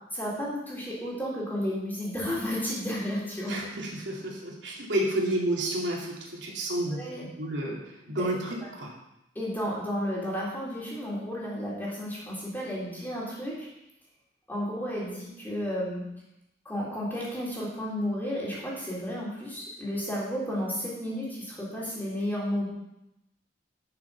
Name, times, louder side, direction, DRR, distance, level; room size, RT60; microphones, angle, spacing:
voice 1, 0.1-3.5 5.0-5.1 6.9-7.2 8.2-8.3 9.4-13.7 14.5-16.0 16.7-22.7, equal, 10° left, -6 dB, 3.7 m, -32 dB
voice 2, 3.4-7.1 7.4-8.9, right 1 dB, 90° right, -3 dB, 2.7 m, -30 dB
10.5 x 6.9 x 5.8 m, 0.88 s
head